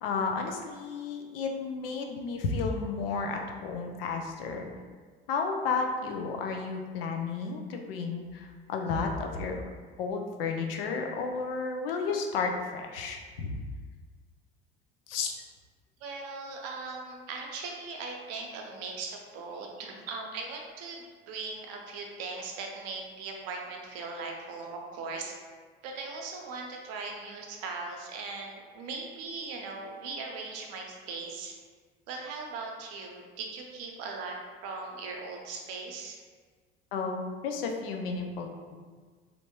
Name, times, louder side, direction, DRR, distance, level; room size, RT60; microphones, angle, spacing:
voice 1, 0.0-4.8 5.3-9.6 10.0-13.5 15.1-15.3 36.9-38.5, left 4 dB, 75° left, 2 dB, 0.5 m, -32 dB
voice 2, 16.0-25.4 25.8-31.6 32.1-34.4 34.6-36.2, right 4 dB, 55° right, 1 dB, 0.7 m, -39 dB
3.3 x 2.5 x 2.9 m, 1.5 s
figure-of-eight pair, 65°, 29 cm